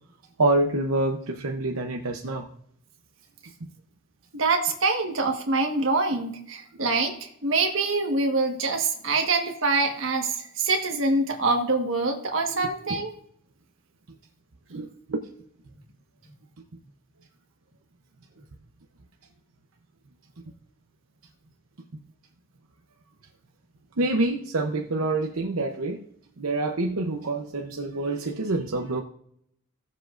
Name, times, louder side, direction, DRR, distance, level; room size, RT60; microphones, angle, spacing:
voice 1, 0.4-2.5 12.6-12.7 14.7-15.3 24.0-26.0 26.4-29.0, right 2 dB, 80° right, 0.8 m, -26 dB
voice 2, 4.3-13.1, right 3 dB, 60° right, 1.5 m, -25 dB
16.5 x 7.4 x 2.6 m
head